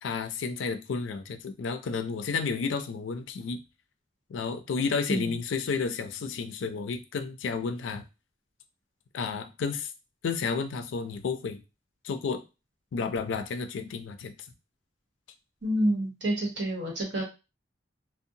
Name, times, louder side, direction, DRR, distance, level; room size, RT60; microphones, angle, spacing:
voice 1, 0.0-3.6 4.3-8.0 9.1-9.9 10.2-11.6 12.0-12.4 12.9-14.3, left 5 dB, 80° left, 9 dB, 0.4 m, -31 dB
voice 2, 15.6-17.2, right 1 dB, 65° right, -2 dB, 1.1 m, -28 dB
2.6 x 2.1 x 2.7 m, 0.28 s
head